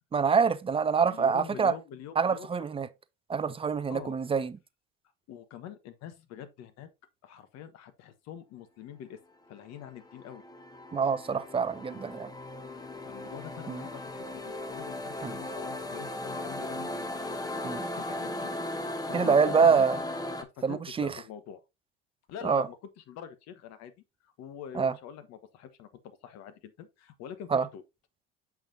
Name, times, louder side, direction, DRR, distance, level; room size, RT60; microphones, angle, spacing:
voice 1, 0.1-1.7 2.2-2.9 3.3-4.5 10.9-12.3 13.7-13.8 15.2-15.4 17.6-17.8 19.1-20.0 20.6-21.1 22.4-22.7 24.7-24.9 27.5-27.7, right 5 dB, 20° right, 0.5 m, -25 dB
voice 2, 1.1-2.5 3.9-4.2 5.3-6.9 7.2-9.2 9.5-10.4 12.8-19.8 20.4-21.6 22.3-23.9 24.2-27.8, left 9 dB, 55° left, 1.2 m, -45 dB
sound 1, 9.7-20.4, left 1 dB, 10° left, 1.0 m, -37 dB
6.9 x 5.8 x 2.6 m
hypercardioid pair, 80°, 31 cm